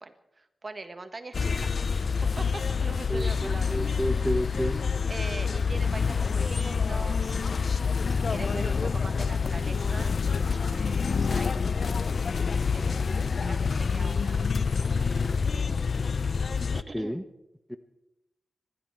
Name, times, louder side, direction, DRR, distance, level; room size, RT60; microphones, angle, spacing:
voice 1, 0.0-4.2 5.1-12.2 12.7-15.8 16.7-17.2, right 3 dB, 35° right, 8 dB, 1.4 m, -43 dB
sound 1, 1.3-16.8, left 5 dB, 60° left, 0.4 m, -27 dB
voice 2, 3.1-4.8 16.9-17.2 17.7-17.8, equal, ahead, 9 dB, 0.8 m, -30 dB
26.0 x 11.5 x 4.5 m, 0.90 s
wide cardioid pair, 105°, 0 cm